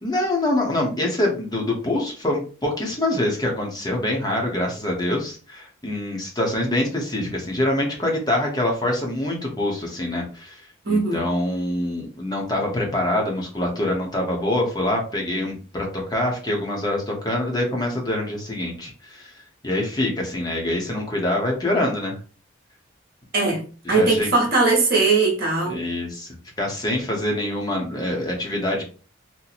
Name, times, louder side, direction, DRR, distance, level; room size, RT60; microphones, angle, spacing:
voice 1, 0.0-10.6 10.9-19.3 19.6-22.2 23.8-24.3 25.7-26.3 26.6-28.8, left 1 dB, 20° left, -1 dB, 0.8 m, -25 dB
voice 2, 10.8-11.2 23.3-23.6 23.9-25.8, right 3 dB, 45° right, -2 dB, 0.9 m, -19 dB
2.9 x 2.1 x 4.0 m, 0.39 s
head